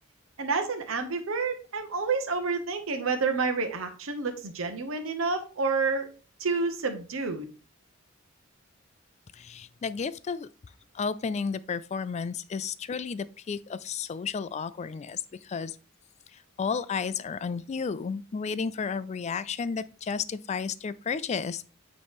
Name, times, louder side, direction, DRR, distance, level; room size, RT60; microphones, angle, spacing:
voice 1, 0.4-6.1 6.4-7.5, right 4 dB, 80° right, 0.8 m, -29 dB
voice 2, 9.3-10.5 10.9-15.8 16.6-21.6, left 5 dB, 35° left, 0.3 m, -32 dB
8.6 x 3.1 x 3.6 m
head